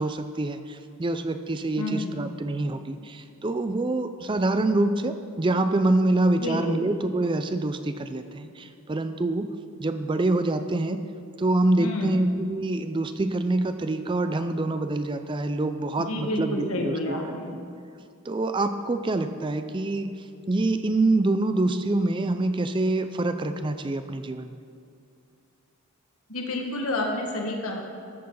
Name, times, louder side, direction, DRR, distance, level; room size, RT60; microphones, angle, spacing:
voice 1, 0.0-9.5 9.8-11.0 11.4-17.2 18.3-20.1 20.5-24.6, right 2 dB, 20° right, 9 dB, 0.4 m, -26 dB
voice 2, 1.8-2.2 6.4-6.8 11.8-12.2 16.0-17.5 26.3-27.8, left 1 dB, 80° left, 2 dB, 1.6 m, -29 dB
14.0 x 6.8 x 5.4 m, 2.4 s
head